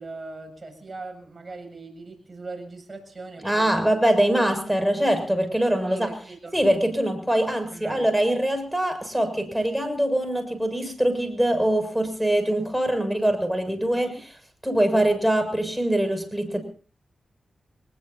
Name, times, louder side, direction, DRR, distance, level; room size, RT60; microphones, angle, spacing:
voice 1, 0.0-3.9 5.8-6.6 7.7-8.1 13.9-14.2, right 3 dB, 40° right, 4 dB, 7.5 m, -40 dB
voice 2, 3.4-6.1 6.5-14.1 14.6-16.6, right 1 dB, 5° right, 7 dB, 7.0 m, -23 dB
24.0 x 21.0 x 2.8 m, 0.39 s
cardioid pair, 45°, 0 cm